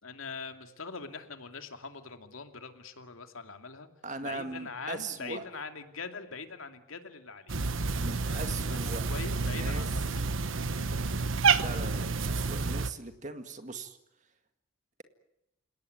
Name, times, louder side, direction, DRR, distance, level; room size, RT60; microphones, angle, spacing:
voice 1, 0.0-3.9 4.2-7.5 8.2-8.4 8.7-8.8 9.1-10.2 10.8-11.0, left 4 dB, 85° left, 7 dB, 2.6 m, -42 dB
voice 2, 4.0-5.4 7.9-9.9 11.6-14.0, right 3 dB, 35° right, 8 dB, 1.9 m, -40 dB
Cat, 7.5-12.9, right 4 dB, 75° right, 1.2 m, -29 dB
29.0 x 18.0 x 9.4 m, 0.86 s
head